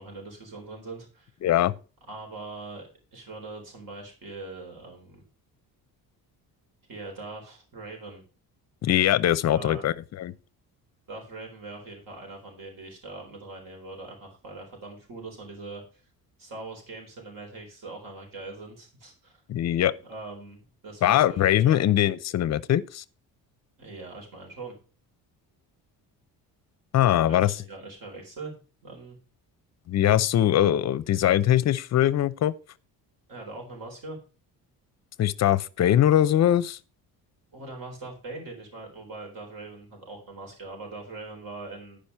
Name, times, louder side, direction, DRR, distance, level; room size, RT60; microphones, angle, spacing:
voice 1, 0.0-1.3 2.1-5.2 6.9-8.2 9.5-9.9 11.1-15.8 16.4-19.4 20.0-21.8 23.8-24.7 27.2-28.5 28.8-29.2 33.3-34.2 37.5-42.0, right 3 dB, 60° right, 4.2 m, -41 dB
voice 2, 1.4-1.7 8.8-10.3 19.5-19.9 21.0-23.0 26.9-27.5 29.9-32.5 35.2-36.8, left 12 dB, 45° left, 0.6 m, -22 dB
10.5 x 5.1 x 5.5 m
cardioid pair, 140°, 38 cm